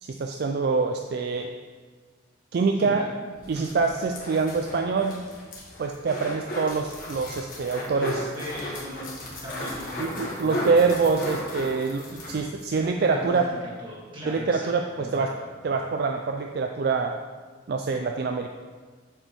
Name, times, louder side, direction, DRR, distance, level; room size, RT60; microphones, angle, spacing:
voice 1, 0.0-1.5 2.5-3.0 3.5-5.2 5.8-8.2 10.0-13.4 14.3-15.3 15.6-17.2 17.7-18.5, right 4 dB, 50° right, 4 dB, 0.3 m, -25 dB
voice 2, 2.7-3.1 3.5-3.8 7.9-11.1 13.0-15.5 15.8-15.9, equal, 25° right, -6 dB, 1.7 m, -39 dB
sound 1, 3.3-12.7 13.0-13.1 13.3-13.5, left 1 dB, 45° left, 1.4 m, -36 dB
7.6 x 6.7 x 3.1 m, 1.5 s
head